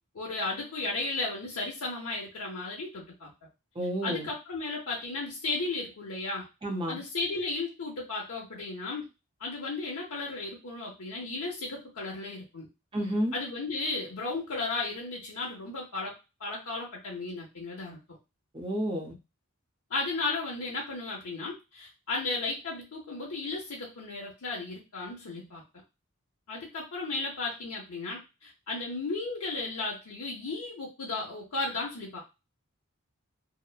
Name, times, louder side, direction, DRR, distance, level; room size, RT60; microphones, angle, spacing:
voice 1, 0.1-3.3 4.0-6.5 6.9-9.1 9.4-12.7 13.3-16.1 16.4-18.0 19.9-25.6 26.5-32.2, left 3 dB, 85° left, -4 dB, 0.8 m, -34 dB
voice 2, 3.8-4.3 6.6-7.0 12.9-13.3 18.5-19.1, equal, 25° right, 0 dB, 0.6 m, -30 dB
2.9 x 2.1 x 2.3 m, 0.27 s
head